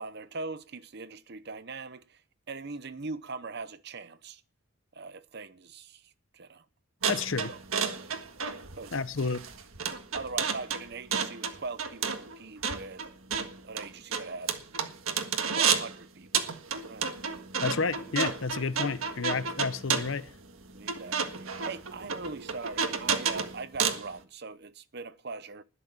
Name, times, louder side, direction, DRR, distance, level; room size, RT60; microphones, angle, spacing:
voice 1, 0.0-2.2 2.5-4.4 4.9-6.6 7.5-8.1 8.7-9.0 10.1-13.0 13.6-14.6 15.5-16.5 16.9-17.1 20.7-25.6, right 3 dB, 50° right, 0.8 m, -41 dB
sound 1, 7.0-16.0 16.3-24.1, right 6 dB, 80° right, 1.6 m, -31 dB
voice 2, 7.1-7.5 8.9-9.4 17.6-20.3, left 4 dB, 65° left, 0.8 m, -30 dB
20.0 x 7.1 x 7.3 m
head